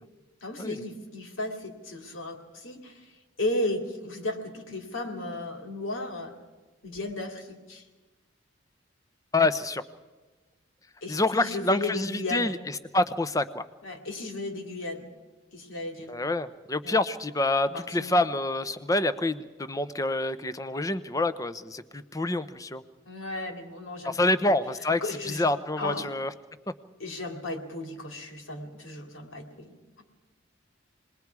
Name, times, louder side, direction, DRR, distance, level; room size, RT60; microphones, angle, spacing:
voice 1, 0.4-3.1 3.4-6.4 6.8-7.8 11.0-12.5 13.8-15.1 15.5-16.1 16.8-17.0 17.7-18.1 23.1-24.6 25.0-25.5 25.8-26.1 27.0-30.0, left 2 dB, 80° left, 3 dB, 2.9 m, -35 dB
voice 2, 9.3-9.8 11.1-12.6 12.9-13.7 16.1-22.8 24.0-25.0 25.3-26.3, left 2 dB, 15° left, 13 dB, 0.6 m, -27 dB
28.0 x 20.5 x 4.7 m, 1.2 s
head